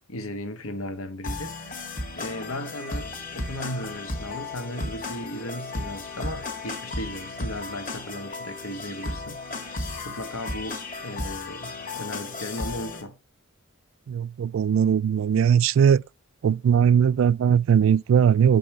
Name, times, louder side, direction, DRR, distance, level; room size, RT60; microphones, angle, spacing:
voice 1, 0.0-13.2, left 1 dB, 90° left, 1.3 m, -36 dB
sound 1, 1.2-13.0, left 2 dB, 40° left, 1.6 m, -34 dB
voice 2, 14.1-16.0 16.4-18.6, right 8 dB, 70° right, 0.3 m, -19 dB
6.0 x 5.4 x 5.5 m
head